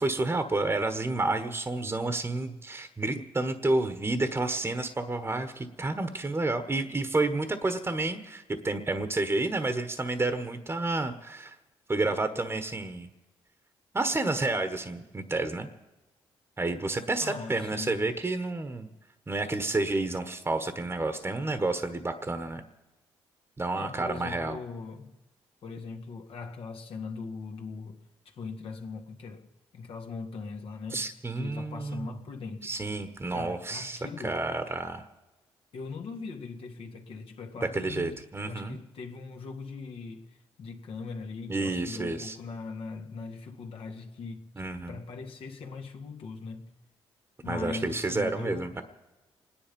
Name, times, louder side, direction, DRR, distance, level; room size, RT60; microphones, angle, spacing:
voice 1, 0.0-11.6 11.9-13.1 13.9-15.7 16.6-18.9 19.3-22.6 23.6-24.6 30.9-32.1 32.6-35.1 37.7-38.8 41.5-42.4 44.6-45.0 47.5-48.8, right 2 dB, 25° right, 1.3 m, -30 dB
voice 2, 17.2-18.1 23.8-25.2 25.6-29.5 29.7-31.1 31.4-32.7 33.3-34.4 35.7-44.5 44.9-46.7 47.4-48.7, left 4 dB, 65° left, 2.0 m, -40 dB
25.5 x 10.5 x 5.4 m
supercardioid pair, 65°, 10 cm